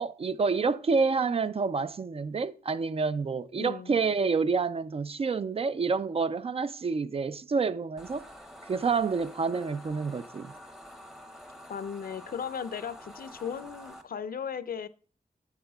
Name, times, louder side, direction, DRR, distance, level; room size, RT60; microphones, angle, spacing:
voice 1, 0.0-8.2 8.7-10.5, right 4 dB, 40° right, 0.3 m, -28 dB
voice 2, 3.6-4.0 11.7-14.9, left 7 dB, 75° left, 0.5 m, -36 dB
sound 1, 8.0-14.0, equal, 5° right, 0.7 m, -48 dB
10.5 x 8.0 x 2.3 m
wide cardioid pair, 135°, 15 cm